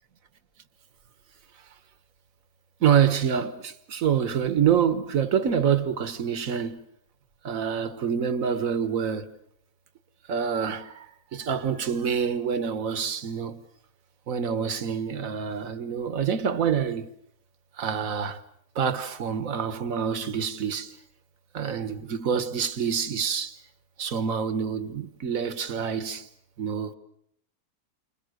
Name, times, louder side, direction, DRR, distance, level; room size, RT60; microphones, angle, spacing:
voice 1, 2.8-6.9 7.4-9.3 10.3-11.1 11.3-13.6 14.3-17.1 17.8-18.4 18.7-20.9 21.5-23.6 24.0-26.3 26.6-26.9, right 7 dB, 60° right, 1.6 m, -26 dB
29.5 x 26.0 x 6.5 m
omnidirectional pair, 1.6 m